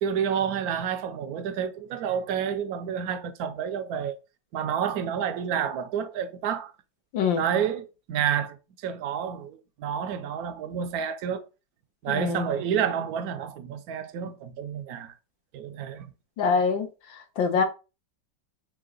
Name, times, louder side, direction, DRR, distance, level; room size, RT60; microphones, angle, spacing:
voice 1, 0.0-4.2 4.5-6.7 7.4-8.6 8.8-11.5 12.0-15.1 15.5-16.1, right 8 dB, 70° right, 0.9 m, -29 dB
voice 2, 7.1-7.4 12.1-12.5 16.4-17.6, left 5 dB, 90° left, 1.7 m, -25 dB
4.7 x 2.8 x 3.8 m
omnidirectional pair, 2.0 m